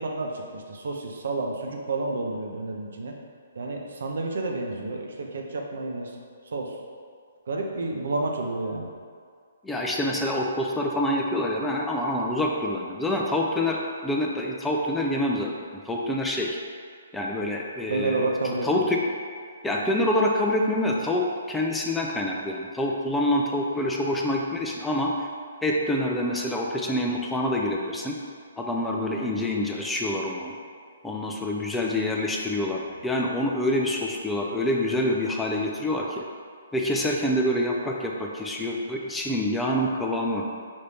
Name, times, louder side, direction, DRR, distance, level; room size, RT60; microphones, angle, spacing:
voice 1, 0.0-3.1 3.5-6.2 6.4-6.8 7.5-8.9 17.9-18.9, right 2 dB, 70° right, 0 dB, 0.6 m, -30 dB
voice 2, 9.6-16.6 17.1-18.3 18.6-19.0 19.6-21.2 21.5-25.1 25.6-28.2 28.6-30.5 31.0-36.2 36.7-40.4, left 1 dB, 5° left, -2 dB, 0.4 m, -26 dB
5.3 x 2.6 x 3.4 m, 2.1 s
hypercardioid pair, 135°, 0 cm